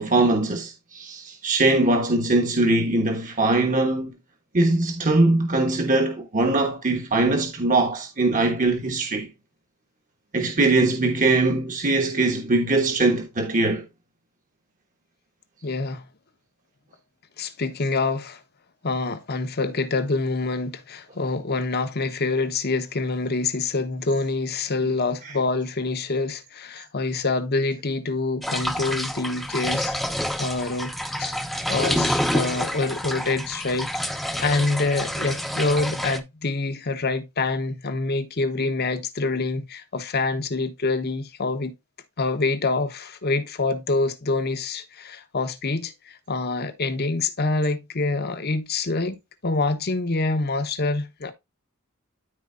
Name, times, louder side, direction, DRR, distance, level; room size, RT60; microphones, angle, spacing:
voice 1, 0.0-4.1 4.5-9.3 10.3-13.8 31.9-32.1, right 2 dB, 35° right, 1.2 m, -21 dB
voice 2, 15.6-16.0 17.4-18.4 18.8-30.0 30.4-30.9 31.2-31.3 31.7-41.7 42.2-51.3, left 3 dB, 45° left, 1.0 m, -26 dB
sound 1, 28.4-36.2, equal, ahead, 0.6 m, -28 dB
13.5 x 4.5 x 2.5 m
head